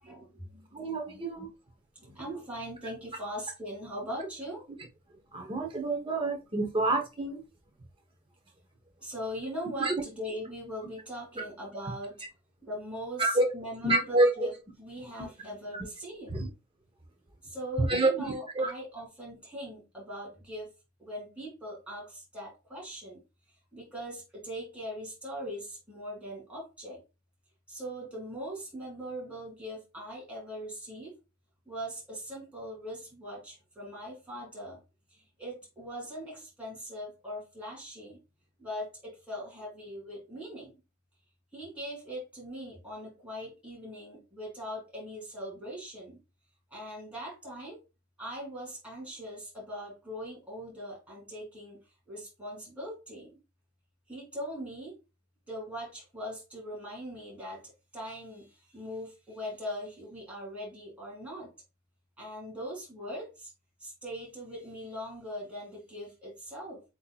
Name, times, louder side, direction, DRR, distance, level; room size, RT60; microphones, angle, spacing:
voice 1, 0.0-1.2 1.9-4.6 9.0-12.1 12.6-14.5 14.8-16.3 17.4-20.7 21.0-23.2 23.7-27.0 27.7-31.1 31.6-34.8 35.1-38.2 38.6-40.7 41.5-46.2 46.7-47.8 48.2-51.8 52.1-53.4 54.1-54.9 55.5-57.6 57.9-61.5 62.2-63.5 63.8-66.8, equal, 5° right, 2.9 m, -41 dB
voice 2, 0.7-1.5 5.3-7.4 9.8-9.9 13.2-13.4 13.8-14.5 16.3-16.5 17.9-18.1 18.5-18.7, right 2 dB, 25° right, 0.8 m, -27 dB
8.1 x 2.8 x 2.3 m
head